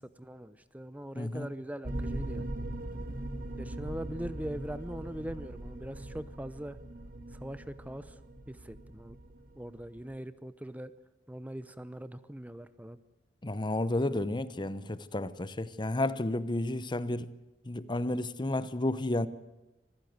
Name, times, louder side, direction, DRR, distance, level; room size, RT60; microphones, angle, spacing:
voice 1, 0.2-2.5 3.6-6.8 7.3-8.2 8.5-9.2 9.6-10.9 11.3-13.0, right 1 dB, 10° right, 0.8 m, -41 dB
voice 2, 1.2-1.5 13.4-17.3 17.7-19.3, left 1 dB, 25° left, 0.9 m, -31 dB
sound 1, 1.8-10.1, right 1 dB, 55° right, 2.0 m, -40 dB
25.5 x 15.5 x 9.4 m
head